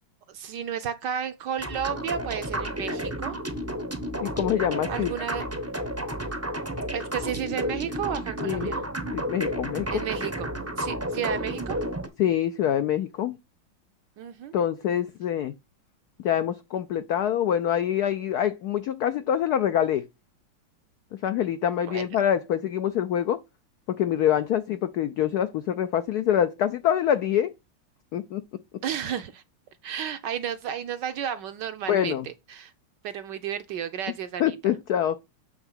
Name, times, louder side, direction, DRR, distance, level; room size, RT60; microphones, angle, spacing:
voice 1, 0.3-3.3 4.9-5.4 6.9-8.8 9.9-10.5 10.8-11.8 14.2-14.5 21.9-22.1 28.8-29.4 29.8-32.7 33.0-34.7, right 9 dB, 70° right, 1.1 m, -32 dB
sound 1, 1.6-12.1, equal, 20° right, 0.4 m, -31 dB
voice 2, 4.2-5.1 8.4-8.7 9.1-10.0 12.2-13.4 14.5-15.6 16.2-20.1 21.2-23.4 23.9-27.5 28.1-28.6 31.9-32.3 34.4-35.2, left 10 dB, 85° left, 0.8 m, -25 dB
8.0 x 3.6 x 5.5 m
omnidirectional pair, 2.3 m